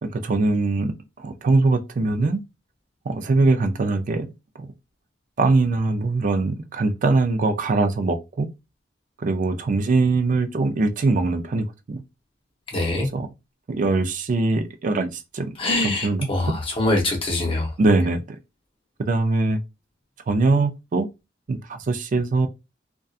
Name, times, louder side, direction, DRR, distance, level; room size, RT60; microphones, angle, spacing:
voice 1, 0.0-2.4 3.1-4.3 4.6-4.7 5.4-8.5 9.2-12.0 13.1-13.3 13.7-15.6 15.8-16.6 17.8-18.2 19.0-19.6 20.3-21.1 21.5-22.5, right 3 dB, 45° right, 0.4 m, -22 dB
voice 2, 12.7-13.1 15.6-17.7, left 2 dB, 30° left, 0.8 m, -23 dB
2.6 x 2.2 x 2.3 m
head